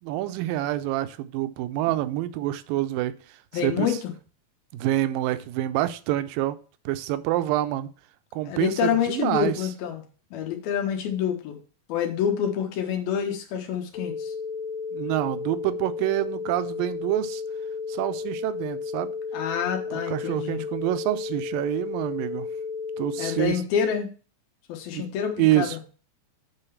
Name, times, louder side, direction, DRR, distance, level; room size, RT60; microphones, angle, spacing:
voice 1, 0.0-3.1 3.6-3.9 4.7-6.6 6.9-7.9 8.3-9.6 14.9-17.4 17.9-19.1 19.9-22.5 23.0-23.6 24.9-25.0 25.4-25.8, right 15 dB, 80° right, 12 dB, 2.2 m, -27 dB
voice 2, 3.5-4.1 8.4-10.0 10.3-11.6 11.9-14.3 19.3-20.7 23.2-24.1 24.7-25.8, left 8 dB, 85° left, 4 dB, 3.2 m, -27 dB
sound 1, 13.9-23.5, left 5 dB, 35° left, 1.4 m, -33 dB
8.9 x 3.9 x 7.0 m, 0.37 s
omnidirectional pair, 4.2 m